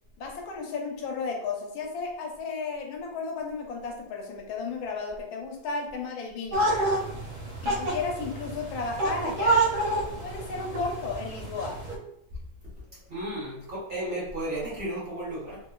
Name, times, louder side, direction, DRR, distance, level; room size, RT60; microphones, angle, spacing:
voice 1, 0.2-6.7 7.6-9.6 10.2-11.8, left 4 dB, 85° left, 1 dB, 1.4 m, -34 dB
sound 1, 6.5-11.9, right 2 dB, 90° right, 1.7 m, -28 dB
voice 2, 13.1-15.6, right 1 dB, 35° right, -9 dB, 1.1 m, -33 dB
3.4 x 2.9 x 2.2 m, 0.76 s
omnidirectional pair, 2.1 m